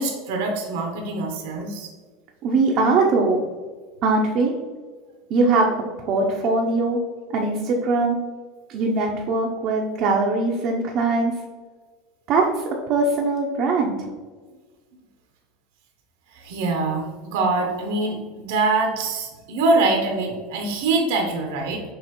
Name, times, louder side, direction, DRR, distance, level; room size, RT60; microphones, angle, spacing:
voice 1, 0.0-1.9 16.3-17.1 17.3-21.8, right 3 dB, 80° right, 2 dB, 0.8 m, -24 dB
voice 2, 2.4-3.4 4.0-4.5 5.3-5.7 6.1-7.0 7.3-8.2 8.7-11.3 12.3-12.5 12.9-14.0, right 3 dB, 40° right, -1 dB, 0.5 m, -21 dB
6.4 x 2.5 x 2.9 m, 1.4 s
supercardioid pair, 150°, 0 cm